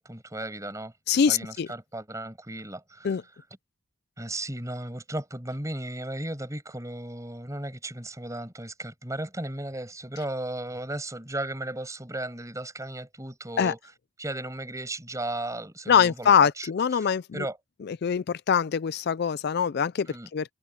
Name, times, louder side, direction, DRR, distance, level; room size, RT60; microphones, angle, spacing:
voice 1, 0.0-0.9 1.3-3.2 4.2-13.8 14.2-16.7 17.0-17.1 17.3-17.6 20.1-20.3, right 1 dB, 15° right, 6.3 m, -35 dB
voice 2, 1.1-1.7 3.0-3.2 13.6-13.7 15.9-17.5 17.8-20.5, left 7 dB, 50° left, 0.4 m, -23 dB
head